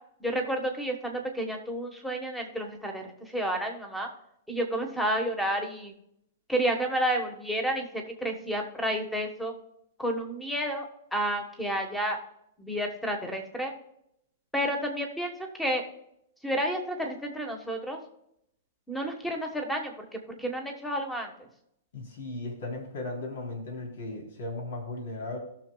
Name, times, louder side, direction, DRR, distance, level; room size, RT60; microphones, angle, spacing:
voice 1, 0.2-4.1 4.5-5.9 6.5-9.5 10.0-10.9 11.1-12.2 12.6-13.7 14.5-15.3 15.6-15.8 16.4-18.0 18.9-19.9 20.4-21.3, right 1 dB, 5° left, 4 dB, 1.3 m, -30 dB
voice 2, 21.9-25.4, left 2 dB, 70° left, 1 dB, 3.6 m, -36 dB
17.0 x 6.5 x 2.3 m, 0.76 s
hypercardioid pair, 165°, 0 cm